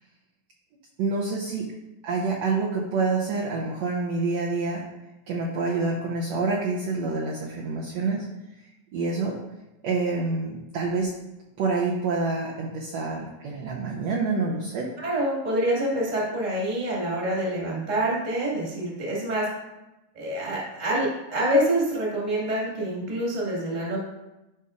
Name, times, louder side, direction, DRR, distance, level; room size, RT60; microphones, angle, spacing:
voice 1, 1.0-1.7 2.0-4.9 5.3-8.3 8.9-9.4 9.8-11.1 11.6-14.9, right 3 dB, 80° right, -3 dB, 1.5 m, -27 dB
voice 2, 15.0-19.5 20.1-24.0, right 1 dB, 20° right, -4 dB, 1.4 m, -26 dB
12.5 x 5.4 x 2.5 m, 0.97 s
omnidirectional pair, 4.1 m